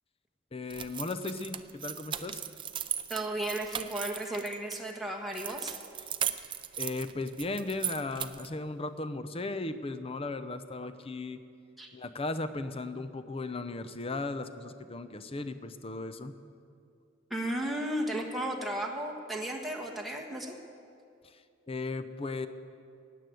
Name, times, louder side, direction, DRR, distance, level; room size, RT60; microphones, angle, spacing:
voice 1, 0.5-2.4 6.0-6.1 6.8-11.4 11.9-16.4 21.2-22.5, left 3 dB, 30° left, 11 dB, 0.6 m, -36 dB
sound 1, 0.7-4.8 5.3-8.5, right 9 dB, 25° right, 0.4 m, -37 dB
voice 2, 3.1-5.8 11.8-11.9 17.3-20.5, right 1 dB, ahead, -1 dB, 1.4 m, -34 dB
16.0 x 9.3 x 7.7 m, 2.4 s
head